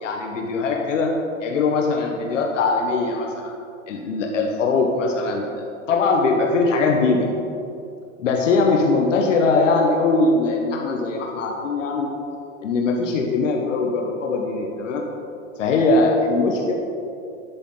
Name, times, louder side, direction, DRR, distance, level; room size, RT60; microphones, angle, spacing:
voice 1, 0.0-1.1 1.4-3.5 3.9-5.5 5.9-7.3 8.2-12.1 12.6-15.0 15.6-16.7, left 3 dB, 75° left, 1 dB, 1.2 m, -21 dB
10.0 x 8.4 x 3.9 m, 2.6 s
hypercardioid pair, 95°, 38 cm